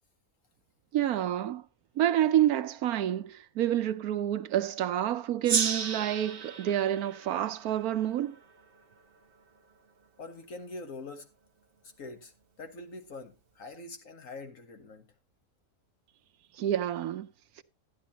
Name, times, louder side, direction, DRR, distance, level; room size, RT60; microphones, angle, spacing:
voice 1, 0.9-1.6 2.0-8.4 16.6-17.3, right 11 dB, 85° right, 1.2 m, -28 dB
Gong, 5.4-8.6, right 5 dB, 45° right, 1.1 m, -33 dB
voice 2, 10.2-11.3 12.0-12.3 12.6-15.1, left 3 dB, 65° left, 1.9 m, -44 dB
13.0 x 10.5 x 2.8 m
omnidirectional pair, 1.5 m